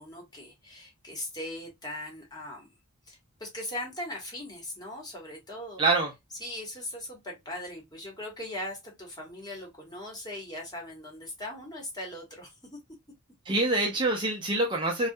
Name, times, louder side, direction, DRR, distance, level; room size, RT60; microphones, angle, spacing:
voice 1, 0.0-2.7 3.1-5.8 6.4-12.8, left 1 dB, 20° left, 1.0 m, -39 dB
voice 2, 5.8-6.1 13.5-15.1, right 2 dB, 25° right, 0.5 m, -25 dB
2.3 x 2.1 x 2.6 m
head